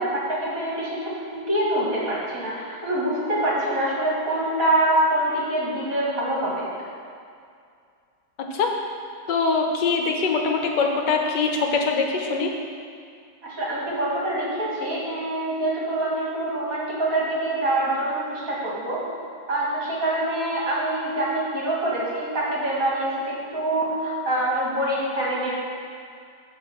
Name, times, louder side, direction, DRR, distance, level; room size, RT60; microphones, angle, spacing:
voice 1, 0.0-6.7 13.4-19.0 19.5-25.6, right 1 dB, 50° right, -6 dB, 2.2 m, -25 dB
voice 2, 9.3-12.5, left 4 dB, 80° left, 2 dB, 1.5 m, -23 dB
9.4 x 3.7 x 6.9 m, 2.3 s
omnidirectional pair, 1.9 m